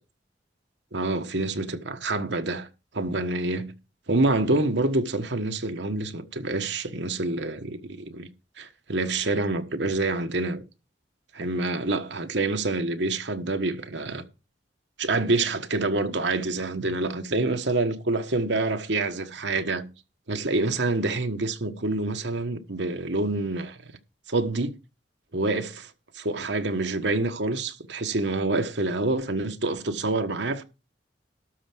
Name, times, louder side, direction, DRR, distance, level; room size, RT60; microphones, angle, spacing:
voice 1, 0.9-2.7 2.9-3.7 4.1-8.3 8.6-10.6 11.3-14.2 15.0-19.9 20.3-23.8 24.3-24.7 25.3-30.6, right 2 dB, 70° right, 1.3 m, -27 dB
12.5 x 4.6 x 7.8 m
head